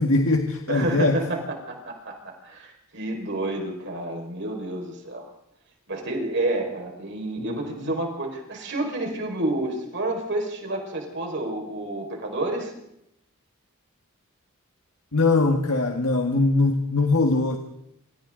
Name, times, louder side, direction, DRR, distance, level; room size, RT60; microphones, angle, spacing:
voice 1, 0.0-1.2 7.4-7.5 7.8-7.9 15.1-17.6, left 3 dB, 80° left, 3 dB, 1.7 m, -21 dB
voice 2, 0.7-5.3 5.9-12.7, right 1 dB, 55° right, 1 dB, 5.2 m, -29 dB
28.0 x 26.0 x 3.9 m, 0.81 s
head